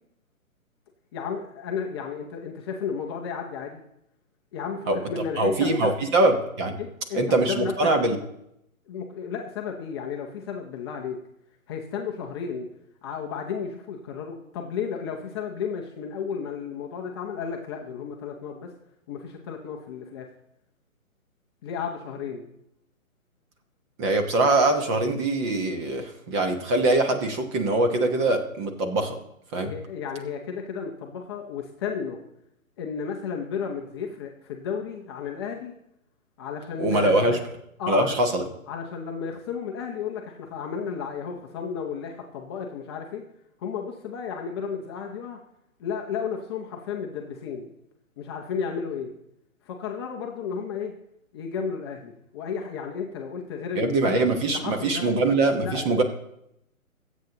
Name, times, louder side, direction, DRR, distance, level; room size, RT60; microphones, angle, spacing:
voice 1, 1.1-3.8 4.5-5.9 6.8-7.8 8.9-11.2 11.7-12.7 13.0-18.7 19.1-20.3 21.6-22.4 29.6-32.2 32.8-35.7 36.4-37.4 37.8-38.1 38.7-43.2 43.6-45.4 45.8-47.7 48.2-49.1 49.6-50.9 51.3-54.2 54.5-55.1 55.6-56.0, left 6 dB, 20° left, 1 dB, 0.8 m, -33 dB
voice 2, 5.4-6.8 7.1-8.2 24.0-29.2 29.5-29.7 36.8-37.4 37.9-38.4 53.8-56.0, right 2 dB, 20° right, 5 dB, 1.1 m, -23 dB
24.5 x 8.2 x 2.9 m, 0.80 s
hypercardioid pair, 145°, 42 cm